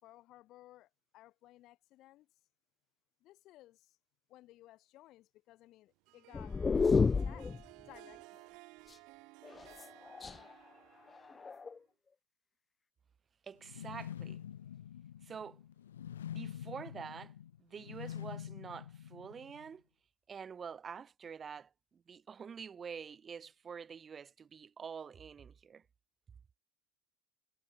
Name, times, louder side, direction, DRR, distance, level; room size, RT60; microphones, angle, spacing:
voice 1, 0.0-2.3 3.2-4.0 4.3-6.6 7.2-7.5 7.9-8.6, left 16 dB, 55° left, 5.4 m, -58 dB
Harp, 6.1-11.8, right 25 dB, 65° right, 4.2 m, -57 dB
sound 1, 6.3-7.6 9.4-10.5 11.3-11.8, left 5 dB, 25° left, 0.6 m, -30 dB
voice 2, 13.4-14.4 15.2-15.6 16.3-17.3 17.6-19.8 20.3-25.8, right 6 dB, 30° right, 3.9 m, -47 dB
sound 2, 13.6-19.7, left 10 dB, 90° left, 2.5 m, -46 dB
hypercardioid pair, 85°, 0 cm